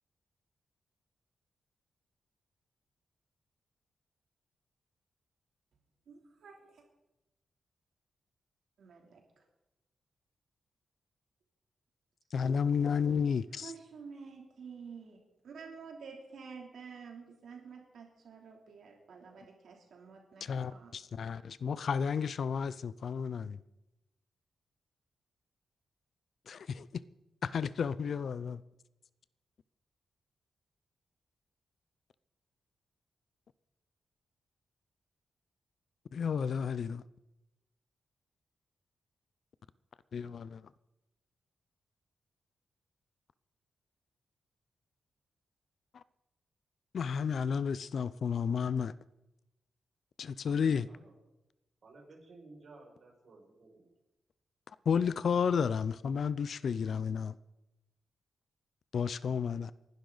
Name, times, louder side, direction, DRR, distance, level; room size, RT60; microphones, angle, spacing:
voice 1, 6.1-6.8 8.8-9.4 13.6-20.9, right 5 dB, 70° right, 3.1 m, -50 dB
voice 2, 12.3-13.7 20.4-23.6 26.5-27.0 27.4-28.6 36.1-37.0 40.1-40.6 45.9-46.0 46.9-48.9 50.2-50.9 54.9-57.3 58.9-59.7, left 6 dB, 55° left, 0.4 m, -32 dB
voice 3, 50.8-51.2 51.8-53.9, right 3 dB, 45° right, 5.7 m, -55 dB
30.0 x 11.5 x 4.0 m
wide cardioid pair, 160°, 0 cm